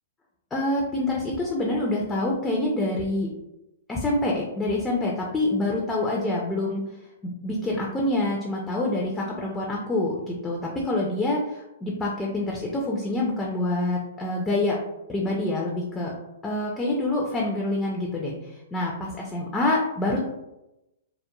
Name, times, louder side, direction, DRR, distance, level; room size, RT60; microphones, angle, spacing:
voice 1, 0.5-3.3 3.9-6.8 7.2-14.8 15.1-16.1 16.4-20.2, left 2 dB, 10° left, -2 dB, 0.4 m, -26 dB
2.9 x 2.1 x 2.2 m, 0.91 s
hypercardioid pair, 140°, 0 cm